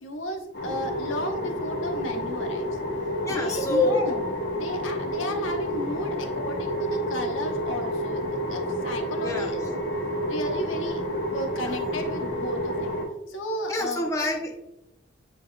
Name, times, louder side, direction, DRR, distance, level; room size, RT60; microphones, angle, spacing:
voice 1, 0.0-2.7 3.3-4.2 4.5-8.2 8.5-9.8 10.3-13.0 13.3-14.1, equal, 75° left, 3 dB, 1.1 m, -34 dB
sound 1, 0.5-13.1, equal, 55° left, 1.3 m, -30 dB
voice 2, 3.2-4.1 9.2-9.5 11.6-11.8 13.7-14.6, left 2 dB, 15° left, 1 dB, 0.7 m, -26 dB
9.4 x 4.8 x 2.3 m, 0.88 s
head